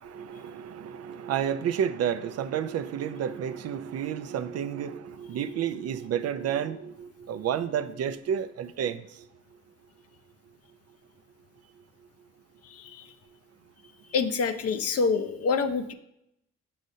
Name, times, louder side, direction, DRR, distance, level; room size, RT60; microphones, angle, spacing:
voice 1, 0.0-9.0, right 9 dB, 55° right, 11 dB, 0.5 m, -31 dB
voice 2, 12.6-13.1 14.1-15.9, left 5 dB, 55° left, 10 dB, 0.6 m, -27 dB
6.6 x 6.2 x 2.7 m, 0.79 s
cardioid pair, 90°, 30 cm